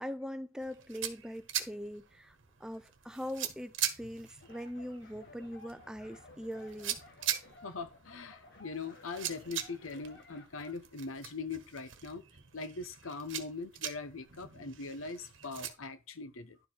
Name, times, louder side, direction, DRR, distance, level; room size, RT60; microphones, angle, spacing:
voice 1, 0.0-7.0, equal, 5° right, 0.5 m, -42 dB
sound 1, 0.6-15.7, right 10 dB, 65° right, 1.2 m, -42 dB
sound 2, 4.4-10.7, left 3 dB, 55° left, 1.7 m, -57 dB
voice 2, 7.6-12.2 12.5-16.6, left 4 dB, 80° left, 0.9 m, -41 dB
11.0 x 4.8 x 4.4 m
head